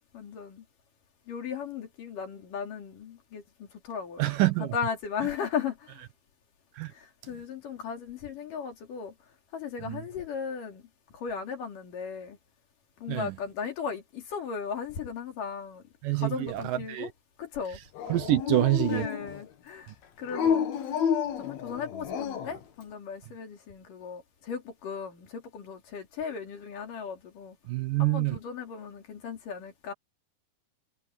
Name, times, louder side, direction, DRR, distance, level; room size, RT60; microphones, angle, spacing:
voice 1, 0.1-0.7 1.3-5.9 6.9-9.1 9.5-10.8 11.1-12.4 13.0-17.1 17.4-17.8 18.9-19.9 20.2-20.9 21.4-27.6 28.0-29.9, left 6 dB, 60° left, 4.5 m, -37 dB
voice 2, 4.2-4.7 6.8-6.9 9.8-10.0 13.1-13.4 16.0-17.1 18.1-19.1 27.7-28.4, right 16 dB, 75° right, 2.3 m, -26 dB
Dog, 18.0-19.5 20.3-22.6, left 7 dB, 80° left, 3.9 m, -30 dB
omnidirectional pair, 4.3 m